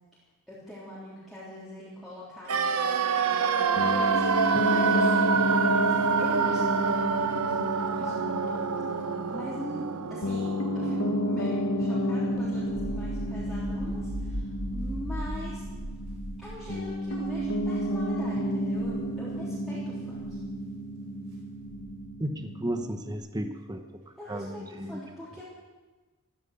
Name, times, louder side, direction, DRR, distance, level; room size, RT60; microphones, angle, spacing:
voice 1, 0.5-5.4 6.2-6.8 7.1-7.4 7.8-8.6 9.3-15.6 16.4-20.4 24.2-25.4, equal, ahead, -10 dB, 3.5 m, -42 dB
sound 1, 2.5-12.4 12.7-12.8, right 5 dB, 85° right, 0.9 m, -27 dB
Piano, 3.8-23.2, equal, 65° left, 1.4 m, -32 dB
sound 2, 12.3-18.2 18.6-19.0 20.1-20.4 21.6-22.0, equal, 60° right, 4.9 m, -38 dB
voice 2, 22.2-24.0 24.3-25.0, right 1 dB, 20° right, 6 dB, 1.0 m, -34 dB
14.0 x 14.0 x 6.7 m, 1.2 s
head